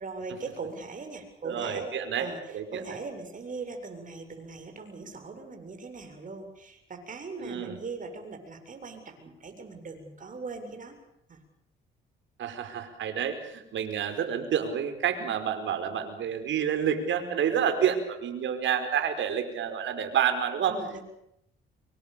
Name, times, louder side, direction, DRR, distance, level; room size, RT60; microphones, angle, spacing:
voice 1, 0.0-10.9 11.3-11.4 20.7-21.0, right 4 dB, 40° right, 5 dB, 7.7 m, -40 dB
voice 2, 1.4-3.0 7.4-7.8 12.4-20.8, right 8 dB, 70° right, 8 dB, 5.1 m, -29 dB
26.0 x 24.0 x 7.1 m, 0.77 s
cardioid pair, 90°, 20 cm